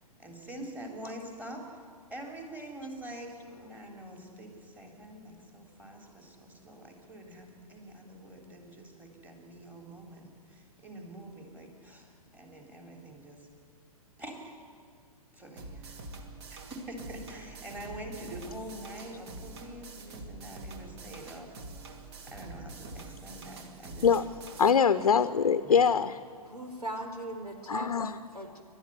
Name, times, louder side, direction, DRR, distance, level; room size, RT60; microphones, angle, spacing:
voice 1, 0.2-1.6 2.1-13.5 14.2-14.5 15.3-16.0 16.5-21.5 22.2-24.1 25.0-25.1 25.6-25.9, right 1 dB, 10° right, 1 dB, 3.6 m, -45 dB
sound 1, 15.6-24.7, right 3 dB, 40° right, 2.5 m, -46 dB
voice 2, 24.6-26.2 27.7-28.1, left 6 dB, 65° left, 12 dB, 0.9 m, -23 dB
voice 3, 26.5-28.0 28.3-28.6, right 1 dB, 80° right, 5 dB, 4.1 m, -38 dB
29.5 x 12.5 x 9.6 m, 2.2 s
figure-of-eight pair, 115°, 20 cm